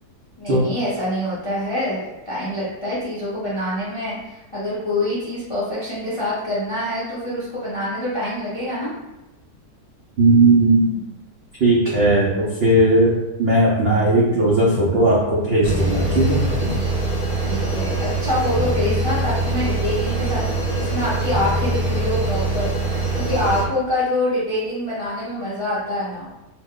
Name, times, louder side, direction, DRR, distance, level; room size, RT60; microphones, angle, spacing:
voice 1, 0.4-8.9 17.4-22.8 23.1-26.3, left 1 dB, 50° left, -9 dB, 0.4 m, -25 dB
voice 2, 10.2-11.0 11.6-13.1 13.4-16.7, right 2 dB, 80° right, -6 dB, 0.5 m, -17 dB
sound 1, 15.6-23.6, right 2 dB, 10° left, 0.8 m, -23 dB
2.8 x 2.1 x 3.6 m, 0.95 s
omnidirectional pair, 1.8 m